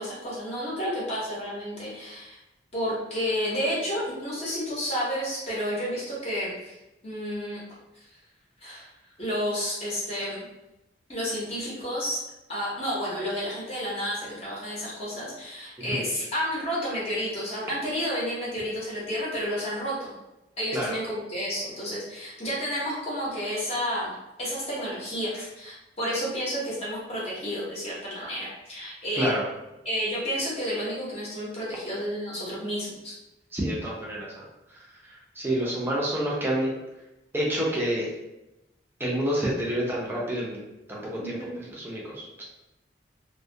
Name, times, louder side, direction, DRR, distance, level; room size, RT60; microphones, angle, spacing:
voice 1, 0.0-2.4 2.7-6.8 7.0-7.6 8.6-8.9 9.2-10.4 11.1-12.2 12.5-20.1 20.6-29.3 29.8-33.1 41.2-41.6, equal, 35° left, -7 dB, 0.7 m, -31 dB
voice 2, 33.5-36.7 37.3-38.1 39.0-40.6 40.9-42.4, right 1 dB, 10° right, -5 dB, 0.5 m, -29 dB
2.2 x 2.1 x 2.6 m, 0.95 s
head